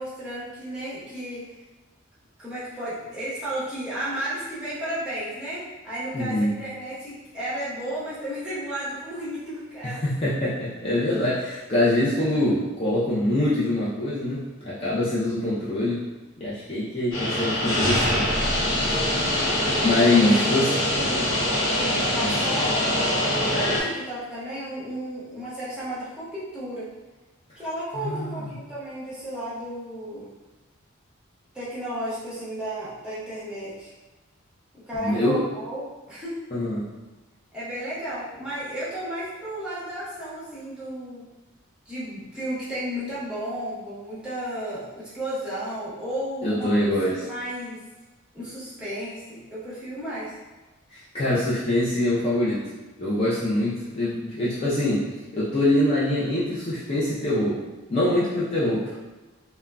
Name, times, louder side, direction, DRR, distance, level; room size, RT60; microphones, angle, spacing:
voice 1, 0.0-1.4 2.4-10.0 20.0-20.3 20.7-21.4 21.7-22.9 23.2-26.9 27.6-30.2 31.5-33.9 34.8-36.4 37.5-41.3 41.9-47.8 48.3-50.3, right 1 dB, 5° right, -10 dB, 0.9 m, -33 dB
voice 2, 6.1-6.5 9.8-16.0 16.4-18.3 18.8-19.0 19.8-20.7 22.2-22.4 27.9-28.5 35.0-35.4 36.5-36.9 46.4-47.2 50.9-52.6 53.0-55.0 55.3-57.6 57.9-58.9, left 1 dB, 30° left, -9 dB, 0.5 m, -24 dB
sound 1, 17.1-23.8, left 1 dB, 65° left, 1.1 m, -24 dB
3.6 x 2.1 x 2.2 m, 1.2 s
head